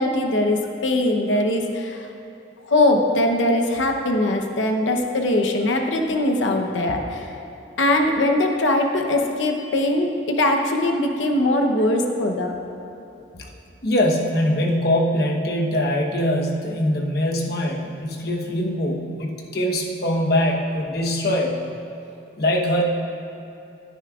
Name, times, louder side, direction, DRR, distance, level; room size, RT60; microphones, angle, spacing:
voice 1, 0.0-2.1 2.7-7.4 7.8-12.6, left 1 dB, 80° left, 3 dB, 0.9 m, -21 dB
voice 2, 13.8-21.6 22.4-22.8, left 1 dB, 55° left, 0 dB, 1.1 m, -22 dB
16.0 x 9.6 x 2.4 m, 2.9 s
head